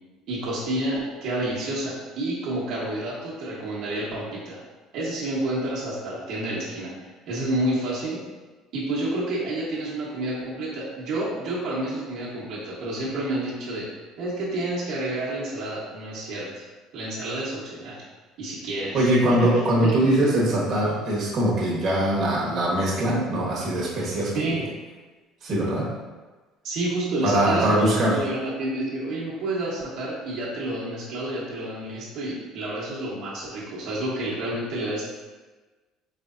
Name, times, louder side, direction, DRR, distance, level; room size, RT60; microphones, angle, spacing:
voice 1, 0.3-4.6 4.9-8.2 8.7-13.9 14.2-16.6 16.9-18.0 18.4-20.1 24.3-24.6 26.6-35.1, right 1 dB, 65° right, -7 dB, 1.1 m, -29 dB
voice 2, 18.9-24.3 25.4-25.9 27.2-28.2, right 1 dB, 40° right, -6 dB, 1.1 m, -22 dB
4.4 x 3.3 x 2.5 m, 1.3 s
cardioid pair, 130°, 0 cm